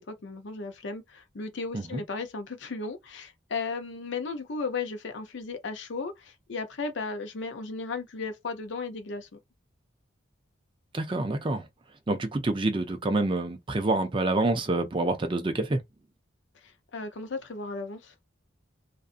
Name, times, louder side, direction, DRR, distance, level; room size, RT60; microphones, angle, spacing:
voice 1, 0.0-9.4 16.6-18.1, left 4 dB, 60° left, 0.6 m, -35 dB
voice 2, 10.9-11.6 12.1-15.8, right 2 dB, 25° right, 0.4 m, -27 dB
2.5 x 2.4 x 2.4 m
head